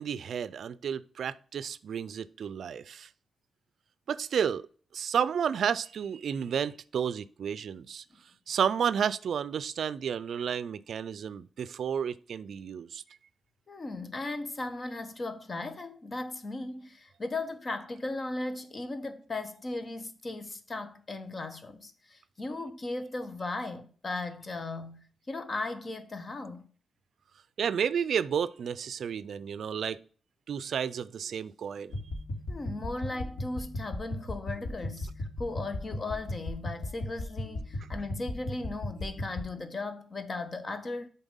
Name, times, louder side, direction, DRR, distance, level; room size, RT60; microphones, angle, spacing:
voice 1, 0.0-3.1 4.1-4.6 4.9-8.0 8.5-13.0 27.6-30.0 30.5-31.9, right 7 dB, 75° right, 0.4 m, -31 dB
voice 2, 13.7-26.7 32.5-41.1, left 2 dB, 40° left, 1.1 m, -37 dB
sound 1, 31.9-39.5, left 1 dB, 70° left, 3.0 m, -37 dB
7.1 x 4.2 x 5.4 m
cardioid pair, 75°, 0 cm